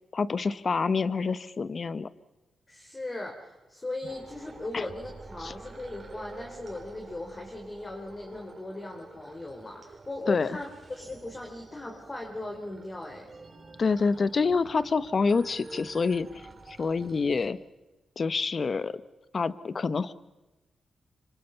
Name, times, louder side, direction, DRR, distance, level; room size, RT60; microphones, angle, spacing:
voice 1, 0.1-2.1 4.7-4.8 5.4-5.5 10.3-10.5 13.8-17.6 18.2-19.0 19.3-20.1, left 4 dB, 50° left, 16 dB, 1.0 m, -27 dB
voice 2, 2.7-13.3, left 2 dB, 30° left, 1 dB, 4.0 m, -38 dB
sound 1, 4.0-17.5, right 3 dB, 40° right, 4.7 m, -48 dB
26.0 x 24.5 x 5.8 m, 1.1 s
cardioid pair, 60°, 0 cm